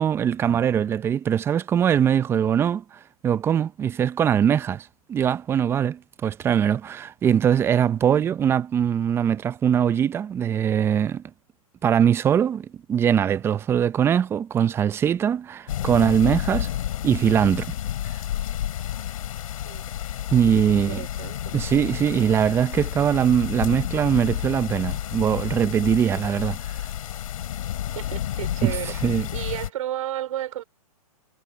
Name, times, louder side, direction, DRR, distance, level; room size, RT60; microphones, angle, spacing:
voice 1, 0.0-11.2 11.8-16.7 17.0-17.7 20.3-21.0 21.5-26.6 28.6-28.8 29.0-29.3, right 8 dB, 10° right, 0.5 m, -22 dB
sound 1, 15.7-29.7, left 11 dB, 65° left, 5.6 m, -30 dB
voice 2, 20.7-21.6 27.9-30.6, right 12 dB, 60° right, 4.8 m, -33 dB
hypercardioid pair, 140°, 20 cm